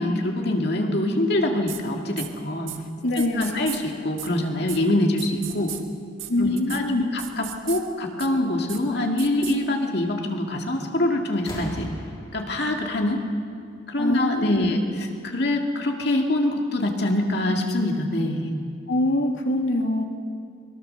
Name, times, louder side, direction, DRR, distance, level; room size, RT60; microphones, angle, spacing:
voice 1, 0.0-2.7 3.1-5.7 6.4-6.8 7.1-11.9 12.3-13.2 13.9-14.8 15.2-18.5, left 1 dB, 55° left, 2 dB, 2.3 m, -24 dB
sound 1, 1.7-1.8 2.2-2.3 2.7-2.8 3.2-3.8 4.2-4.3 4.7-4.8 5.2-5.8 6.2-6.3 6.6-6.8 7.2-7.8 8.2-8.3 8.7-8.8 9.2-9.6, right 12 dB, 80° right, 1.7 m, -35 dB
voice 2, 3.0-3.6 6.3-7.0 14.0-14.8 18.9-20.0, left 1 dB, 75° left, 2 dB, 2.6 m, -24 dB
sound 2, 10.7-11.0 11.3-14.1 15.2-15.3, equal, 25° left, 3.0 m, -40 dB
23.0 x 22.0 x 6.8 m, 2.3 s
head